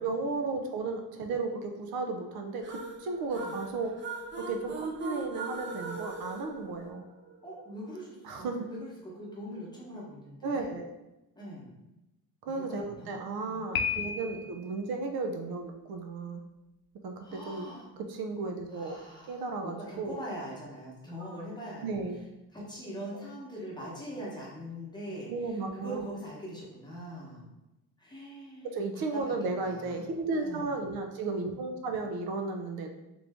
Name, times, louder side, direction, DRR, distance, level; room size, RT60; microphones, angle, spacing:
voice 1, 0.0-3.9 4.4-7.0 8.2-8.6 10.4-10.9 12.4-16.4 17.0-17.7 18.0-19.0 19.3-20.1 21.8-22.2 25.3-26.0 28.6-32.9, right 3 dB, 80° right, 4 dB, 0.6 m, -34 dB
sound 1, 2.6-7.4, right 3 dB, 30° right, 0.6 m, -40 dB
voice 2, 7.4-10.7 11.4-11.7 12.5-13.7 17.2-17.9 18.7-21.9 22.5-27.5 28.0-29.3 29.6-30.8, equal, 10° left, -5 dB, 0.9 m, -43 dB
Piano, 13.7-14.7, left 6 dB, 85° left, 0.5 m, -32 dB
3.2 x 2.6 x 3.4 m, 0.96 s
cardioid pair, 160°, 36 cm